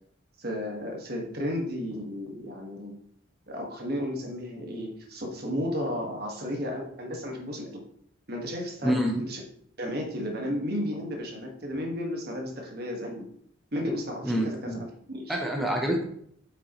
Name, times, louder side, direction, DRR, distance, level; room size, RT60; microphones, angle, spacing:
voice 1, 0.4-2.9 3.5-7.8 8.3-8.9 9.3-9.4 9.8-13.3 13.7-15.4, equal, 50° right, 1 dB, 1.6 m, -33 dB
voice 2, 8.8-9.2 14.2-14.8 15.3-16.0, equal, ahead, 0 dB, 0.8 m, -27 dB
8.3 x 6.0 x 3.1 m, 0.66 s
head